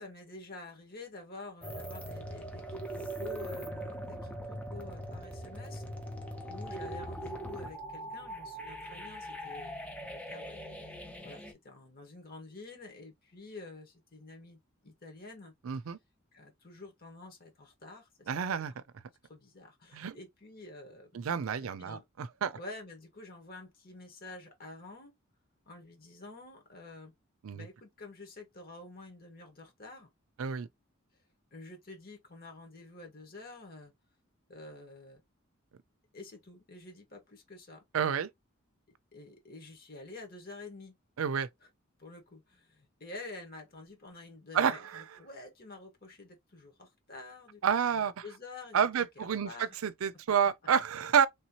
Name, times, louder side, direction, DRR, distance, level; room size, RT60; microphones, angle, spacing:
voice 1, 0.0-5.8 6.5-11.0 11.2-15.5 16.3-18.7 19.2-22.0 22.5-25.1 25.6-27.1 27.5-30.1 31.5-33.9 34.5-35.2 36.1-37.8 39.1-41.0 41.6-41.7 42.0-47.6 47.9-48.8 49.1-49.8, left 2 dB, 50° left, 1.5 m, -49 dB
sound 1, 1.6-11.5, right 1 dB, 5° left, 0.7 m, -41 dB
voice 2, 15.6-16.0 18.3-18.8 19.9-20.2 21.1-22.6 27.4-27.7 30.4-30.7 37.9-38.3 41.2-41.5 44.5-45.0 47.6-48.2 48.7-51.3, right 7 dB, 85° right, 0.4 m, -29 dB
3.3 x 2.8 x 2.8 m
head